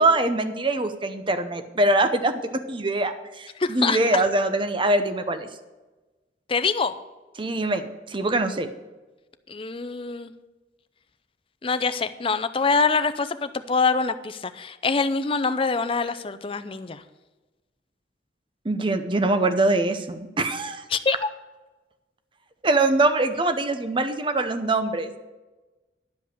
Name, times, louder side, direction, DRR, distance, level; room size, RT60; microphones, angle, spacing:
voice 1, 0.0-5.5 7.4-8.7 18.6-20.8 22.6-25.2, right 2 dB, 25° right, 9 dB, 0.7 m, -23 dB
voice 2, 3.6-4.2 6.5-6.9 9.5-10.3 11.6-17.0 20.9-21.3, left 4 dB, 30° left, 11 dB, 0.5 m, -25 dB
11.0 x 5.3 x 7.9 m, 1.2 s
head